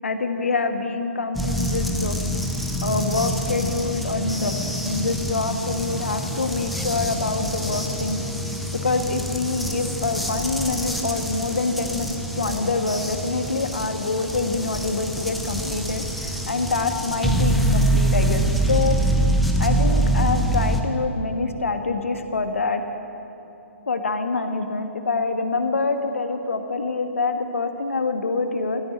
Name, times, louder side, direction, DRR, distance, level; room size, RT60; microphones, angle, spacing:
voice 1, 0.0-2.2 2.8-4.6 4.8-8.2 8.8-19.0 19.6-22.8 23.9-28.8, left 3 dB, 70° left, 6 dB, 1.5 m, -25 dB
sound 1, 1.3-20.8, right 1 dB, ahead, 1.0 m, -25 dB
14.0 x 11.0 x 8.4 m, 2.9 s
figure-of-eight pair, 125°, 7 cm